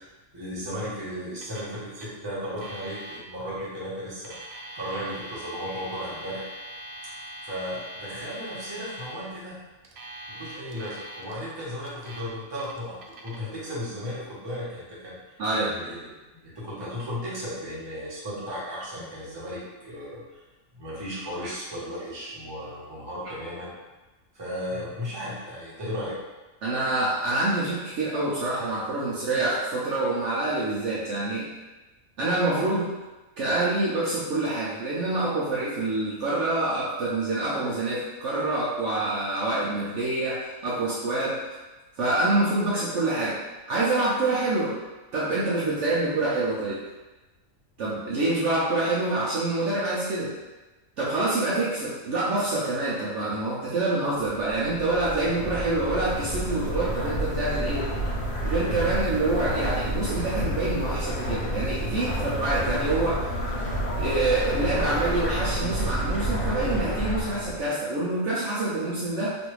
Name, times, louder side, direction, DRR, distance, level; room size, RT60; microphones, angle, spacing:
voice 1, 0.3-6.5 7.4-9.6 10.3-15.1 15.6-16.1 16.4-20.4 20.7-23.7 24.3-26.2, equal, 20° right, -8 dB, 0.8 m, -35 dB
Alarm, 1.4-1.7 2.0-2.1 2.6-3.2 4.1-9.1 9.8-11.4 11.8-12.2 12.6-13.4, equal, 80° right, 0.5 m, -42 dB
voice 2, 15.4-15.7 26.6-31.5 32.2-32.9 33.4-41.4 42.0-43.4 43.7-44.8 45.1-46.8 47.8-50.3 51.0-57.9 58.4-63.2 63.9-69.4, right 2 dB, 65° right, -7 dB, 0.8 m, -26 dB
sound 1, 54.2-67.7, right 1 dB, 70° left, 1.4 m, -29 dB
3.1 x 2.6 x 3.0 m, 1.1 s
omnidirectional pair, 1.5 m